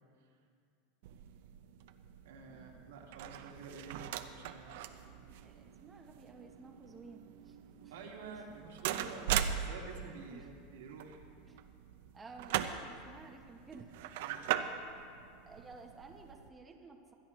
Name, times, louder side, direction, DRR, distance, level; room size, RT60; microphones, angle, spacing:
sound 1, 1.0-16.5, right 10 dB, 70° right, 0.6 m, -41 dB
voice 1, 2.2-5.1 7.9-11.2 14.2-14.7, right 4 dB, 90° right, -1 dB, 2.0 m, -50 dB
voice 2, 5.3-7.6 7.8-7.9 10.3-10.5 11.5-11.6 12.1-13.9 15.5-17.1, right 3 dB, 15° right, 1 dB, 1.0 m, -53 dB
24.5 x 10.0 x 3.1 m, 2.4 s
supercardioid pair, 135°, 0 cm